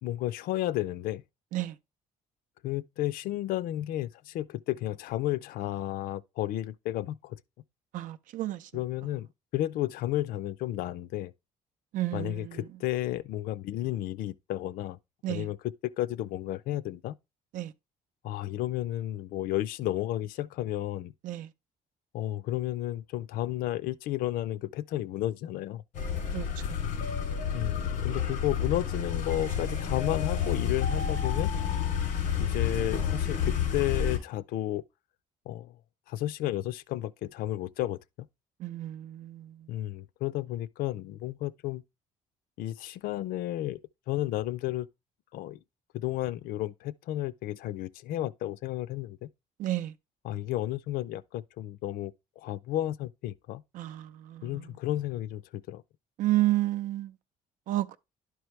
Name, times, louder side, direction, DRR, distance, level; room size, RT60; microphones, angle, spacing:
voice 1, 0.0-1.2 2.6-7.4 8.7-9.3 9.5-11.3 12.1-15.0 15.3-17.2 18.2-21.1 22.1-25.8 27.5-31.5 32.4-34.8 35.5-35.8 36.1-38.3 39.7-41.8 42.6-43.8 44.1-44.9 45.3-45.6 45.9-49.3 50.2-53.6 54.4-55.8, left 14 dB, 80° left, 0.5 m, -32 dB
voice 2, 7.9-8.7 11.9-12.6 15.2-15.5 17.5-17.7 21.2-21.5 26.3-26.5 38.6-39.5 49.6-49.9 53.7-54.5 56.2-57.1 57.7-58.0, right 16 dB, 65° right, 0.6 m, -31 dB
sound 1, 25.9-34.2, left 7 dB, 60° left, 3.1 m, -30 dB
11.5 x 4.6 x 3.2 m
cardioid pair, 160°, 15 cm